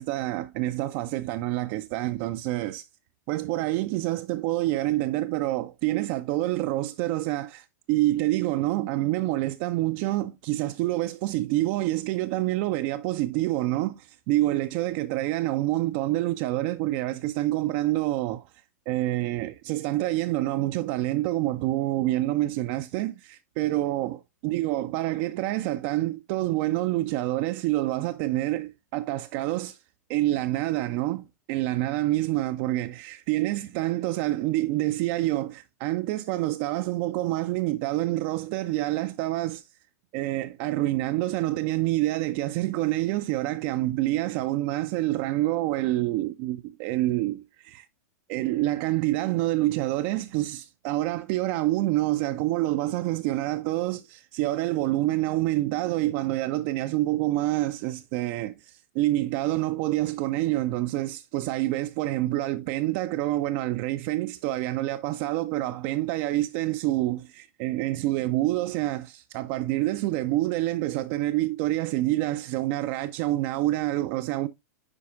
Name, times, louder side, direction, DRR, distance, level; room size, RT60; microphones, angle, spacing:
voice 1, 0.0-2.9 3.3-18.5 18.9-29.8 30.1-39.7 40.1-47.8 48.3-74.5, right 16 dB, 40° right, 0.4 m, -27 dB
9.7 x 4.7 x 2.3 m
figure-of-eight pair, 95°, 9 cm